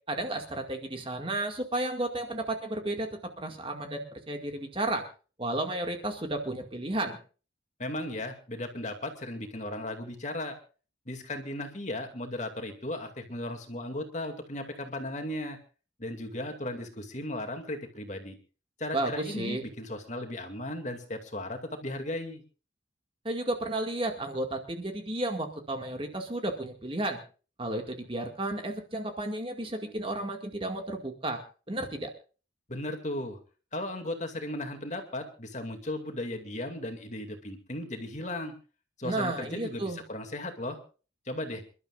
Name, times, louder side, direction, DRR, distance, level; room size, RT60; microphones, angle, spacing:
voice 1, 0.1-5.0 5.4-7.2 18.9-19.6 23.2-27.2 27.6-31.4 31.7-32.1 39.0-40.0, right 1 dB, 25° right, 4 dB, 2.1 m, -33 dB
voice 2, 7.8-10.6 11.1-15.6 16.0-18.4 18.8-22.4 32.7-33.4 33.7-38.5 39.0-40.8 41.3-41.6, left 1 dB, 40° left, 5 dB, 2.4 m, -36 dB
28.0 x 12.5 x 2.5 m, 0.36 s
head